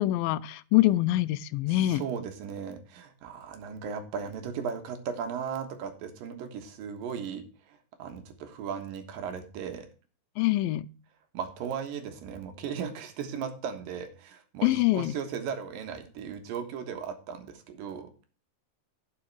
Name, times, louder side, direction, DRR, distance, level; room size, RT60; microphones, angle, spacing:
voice 1, 0.0-2.0 10.4-10.9 14.6-15.1, left 16 dB, 90° left, 2.4 m, -24 dB
voice 2, 1.7-9.9 11.3-18.1, right 7 dB, 80° right, 3.1 m, -37 dB
11.5 x 6.6 x 4.7 m
omnidirectional pair, 4.0 m